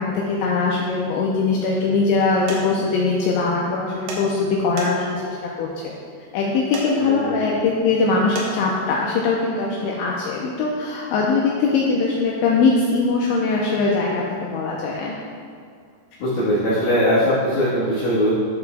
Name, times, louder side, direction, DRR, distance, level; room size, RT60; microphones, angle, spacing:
voice 1, 0.0-5.9 6.3-15.2, left 4 dB, 85° left, -3 dB, 2.6 m, -21 dB
sound 1, 2.5-2.6 4.1-4.2 4.8-5.2 6.7-6.9 8.4-8.5, right 4 dB, 75° right, 3.0 m, -31 dB
voice 2, 7.0-7.4 16.2-18.3, equal, 65° left, -11 dB, 2.4 m, -20 dB
12.0 x 6.7 x 2.3 m, 2.2 s
omnidirectional pair, 5.9 m